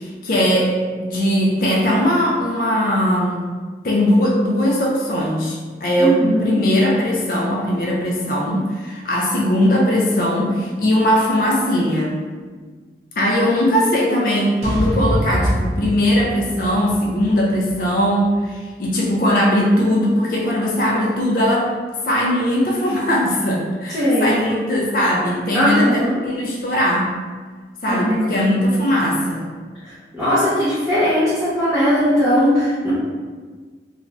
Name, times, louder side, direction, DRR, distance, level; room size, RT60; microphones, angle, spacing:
voice 1, 0.0-3.4 3.8-12.1 13.2-21.7 22.0-27.2 27.8-29.4, equal, 50° left, -3 dB, 0.4 m, -19 dB
voice 2, 6.0-6.6 11.3-11.5 23.9-24.4 25.5-26.2 27.9-28.3 30.1-32.9, equal, ahead, -14 dB, 0.7 m, -18 dB
sound 1, 14.6-18.8, equal, 40° right, 0.6 m, -25 dB
2.4 x 2.3 x 3.1 m, 1.5 s
head